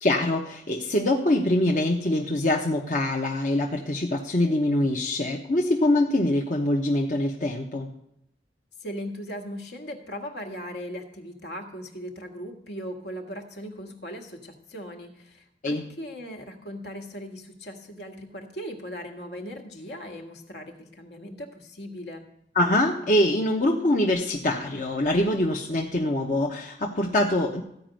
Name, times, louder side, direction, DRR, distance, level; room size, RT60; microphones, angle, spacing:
voice 1, 0.0-7.9 15.6-15.8 22.5-27.6, left 1 dB, 45° left, 0 dB, 1.0 m, -24 dB
voice 2, 8.8-22.3, equal, 70° left, 3 dB, 1.8 m, -38 dB
15.0 x 5.2 x 9.0 m, 0.76 s
head